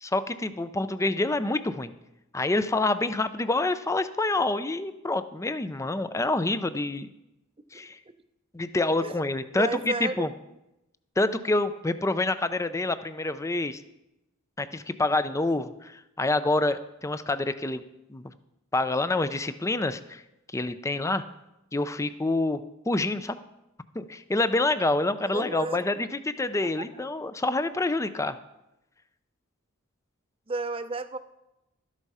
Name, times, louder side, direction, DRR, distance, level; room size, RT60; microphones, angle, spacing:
voice 1, 0.0-1.9 2.3-7.1 7.7-8.0 8.5-10.3 11.2-13.8 14.6-17.8 18.1-18.3 18.7-20.2 20.5-21.2 21.7-22.6 22.9-23.4 23.9-28.4, left 2 dB, 15° left, 12 dB, 0.5 m, -27 dB
voice 2, 9.5-10.3 25.3-25.8 26.8-26.9 30.5-31.2, right 3 dB, 25° right, 11 dB, 0.6 m, -31 dB
12.5 x 8.2 x 5.5 m, 0.90 s
head